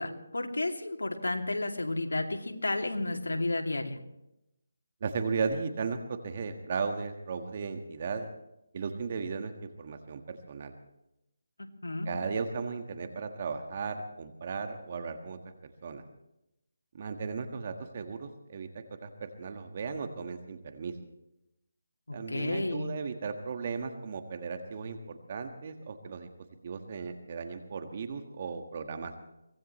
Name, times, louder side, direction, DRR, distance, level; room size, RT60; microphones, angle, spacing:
voice 1, 0.0-4.0 11.8-12.1 22.1-22.9, left 2 dB, 90° left, 3 dB, 2.6 m, -32 dB
voice 2, 5.0-8.3 8.7-9.5 9.8-10.7 12.0-16.0 16.9-20.9 22.1-26.3 26.6-29.2, right 5 dB, 40° right, 6 dB, 1.6 m, -36 dB
24.0 x 18.5 x 3.2 m, 0.86 s
figure-of-eight pair, 160°, 0 cm